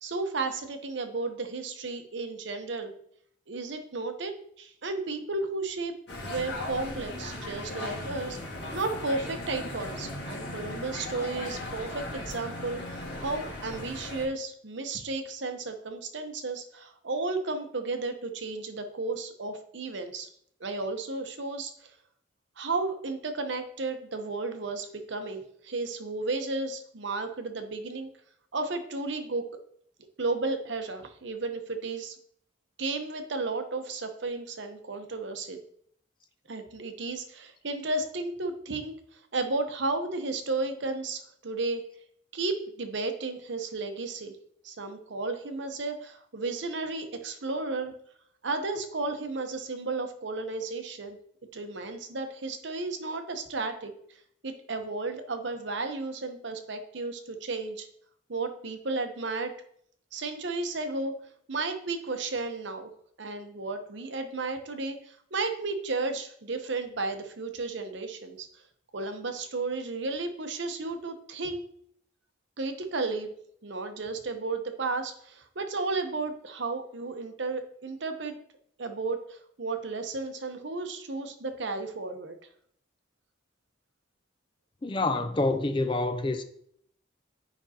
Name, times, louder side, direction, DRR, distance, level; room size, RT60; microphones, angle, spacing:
voice 1, 0.0-2.9 3.5-5.9 6.2-20.3 20.6-21.9 22.6-28.1 28.5-29.5 30.2-32.2 32.8-35.6 36.5-41.8 42.3-44.4 44.6-47.9 48.4-51.2 51.5-57.9 58.3-59.5 60.1-61.1 61.5-62.9 63.2-68.6 68.9-71.6 72.6-73.3 73.6-78.3 78.8-82.4, right 3 dB, 65° right, 0.8 m, -33 dB
sound 1, 6.1-14.3, left 1 dB, 60° left, 1.7 m, -37 dB
voice 2, 84.8-86.4, left 2 dB, 25° left, 0.4 m, -27 dB
9.7 x 5.2 x 2.8 m
head